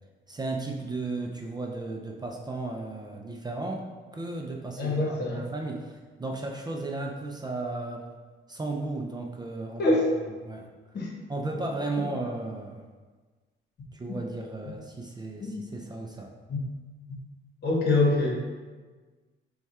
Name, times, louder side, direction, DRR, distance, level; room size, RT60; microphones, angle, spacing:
voice 1, 0.3-8.0 8.5-9.9 10.4-10.7 11.3-12.8 13.9-16.3, right 2 dB, 20° right, 1 dB, 0.4 m, -34 dB
voice 2, 4.8-5.4 9.8-10.0 10.9-11.1 12.0-12.1 14.1-14.2 15.4-15.6 16.5-16.7 17.6-18.4, left 2 dB, 55° left, -2 dB, 1.2 m, -25 dB
4.3 x 2.4 x 4.2 m, 1.4 s
cardioid pair, 90°, 20 cm